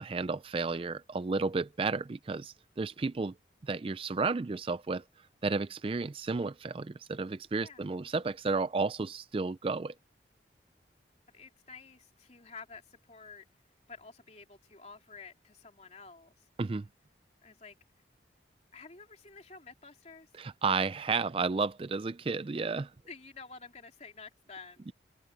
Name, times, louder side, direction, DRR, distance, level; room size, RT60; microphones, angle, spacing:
voice 1, 0.0-3.3 3.6-5.0 5.4-9.9 16.6-16.9 20.4-22.9 24.9-25.0, right 4 dB, 30° right, 0.4 m, -32 dB
voice 2, 11.3-13.4 13.9-16.5 17.4-17.8 18.7-20.3 23.1-24.9, left 4 dB, 35° left, 3.4 m, -50 dB
open air
head